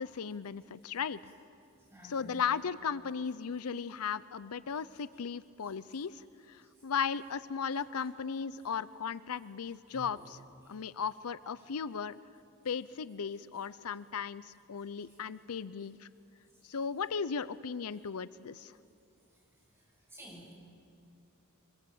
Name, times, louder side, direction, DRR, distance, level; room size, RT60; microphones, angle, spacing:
voice 1, 0.0-1.3 2.0-10.4 10.7-12.1 12.6-16.1 16.6-18.8, left 6 dB, 80° left, 17 dB, 0.6 m, -36 dB
voice 2, 1.9-2.3 6.6-6.7 9.9-10.1 10.7-10.8 14.9-15.2 17.9-18.0 19.8-19.9 20.1-20.5, equal, 10° right, -2 dB, 7.6 m, -52 dB
25.0 x 22.0 x 8.6 m, 2.5 s
head